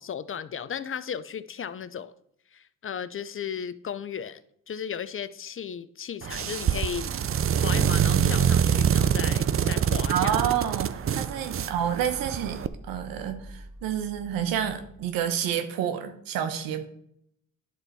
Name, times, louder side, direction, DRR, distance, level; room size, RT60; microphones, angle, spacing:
voice 1, 0.0-2.1 2.5-7.1 7.6-10.5 11.6-11.7, left 8 dB, 40° left, 0.6 m, -35 dB
sound 1, 6.2-12.7, right 9 dB, 40° right, 0.5 m, -25 dB
sound 2, 6.7-15.4, right 1 dB, 5° right, 2.3 m, -44 dB
voice 2, 10.1-16.9, right 9 dB, 90° right, 1.1 m, -29 dB
10.5 x 4.0 x 4.6 m
supercardioid pair, 70°, 33 cm